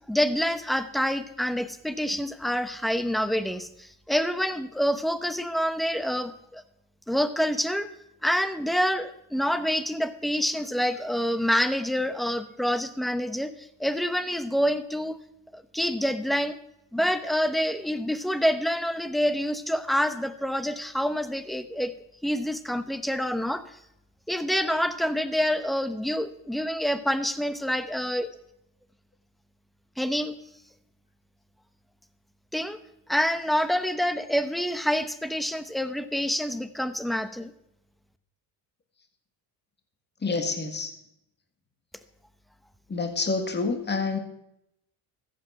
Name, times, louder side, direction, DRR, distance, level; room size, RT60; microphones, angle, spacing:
voice 1, 0.1-6.6 7.1-7.9 8.2-15.2 15.5-16.6 16.9-21.9 22.2-23.8 24.3-28.3 30.0-30.4 32.5-32.8 33.1-37.5, equal, ahead, 12 dB, 0.9 m, -27 dB
voice 2, 40.2-40.9 42.9-44.2, left 4 dB, 25° left, 6 dB, 1.8 m, -27 dB
14.0 x 7.8 x 5.8 m, 0.79 s
cardioid pair, 90°, 45 cm